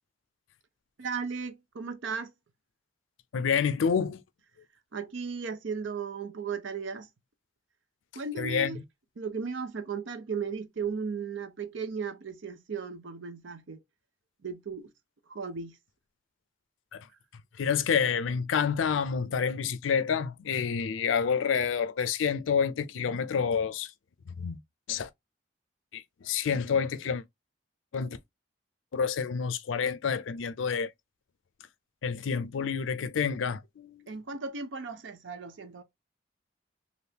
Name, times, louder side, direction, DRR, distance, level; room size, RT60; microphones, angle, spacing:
voice 1, 1.0-2.3 4.9-7.1 8.1-8.8 9.2-13.8 14.4-14.9 15.3-15.8 34.1-35.8, right 5 dB, 80° right, 0.6 m, -36 dB
voice 2, 3.3-4.2 8.4-8.8 16.9-17.1 17.6-23.9 24.3-24.6 24.9-25.1 25.9-27.2 27.9-28.2 28.9-30.9 32.0-34.1, left 6 dB, 90° left, 0.4 m, -28 dB
3.4 x 2.5 x 2.7 m
head